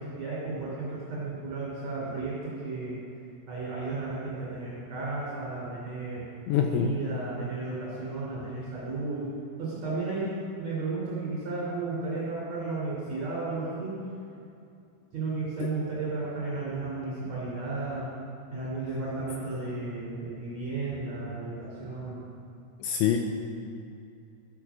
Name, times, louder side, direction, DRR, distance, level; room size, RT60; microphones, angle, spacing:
voice 1, 0.0-3.0 3.5-6.2 6.5-9.2 9.6-14.0 15.1-18.1 18.5-22.2, right 3 dB, 40° right, -8 dB, 3.6 m, -33 dB
voice 2, 6.5-6.9 15.6-15.7 22.8-23.2, left 9 dB, 90° left, 3 dB, 2.7 m, -25 dB
13.5 x 9.8 x 6.2 m, 2.6 s
omnidirectional pair, 6.0 m